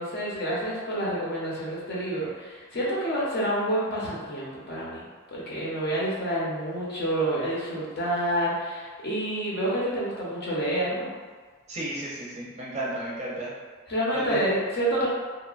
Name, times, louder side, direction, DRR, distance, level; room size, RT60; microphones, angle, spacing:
voice 1, 0.0-5.0 5.3-11.1 13.9-15.1, right 1 dB, 50° left, -6 dB, 0.7 m, -28 dB
voice 2, 11.7-13.5 14.1-14.4, right 1 dB, 30° right, -6 dB, 0.5 m, -33 dB
2.8 x 2.1 x 2.4 m, 1.5 s
head